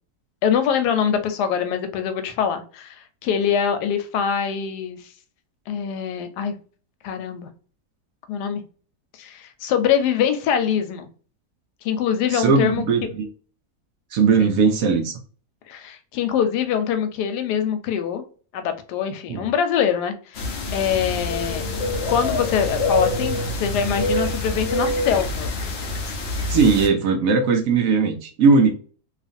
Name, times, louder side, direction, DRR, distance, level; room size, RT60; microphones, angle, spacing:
voice 1, 0.4-5.0 5.7-6.5 7.0-7.5 8.3-8.6 9.1-11.1 11.8-13.1 14.4-14.5 15.7-18.2 18.5-20.5 20.7-21.7 22.1-25.5, left 8 dB, 90° left, 8 dB, 1.2 m, -24 dB
voice 2, 12.3-13.3 14.1-15.2 19.3-19.5 26.5-28.7, right 4 dB, 70° right, 4 dB, 0.9 m, -18 dB
sound 1, 20.3-26.9, left 2 dB, 65° left, 0.6 m, -26 dB
sound 2, 20.9-25.7, right 4 dB, 10° right, 1.1 m, -37 dB
2.8 x 2.4 x 2.5 m, 0.41 s
omnidirectional pair, 1.7 m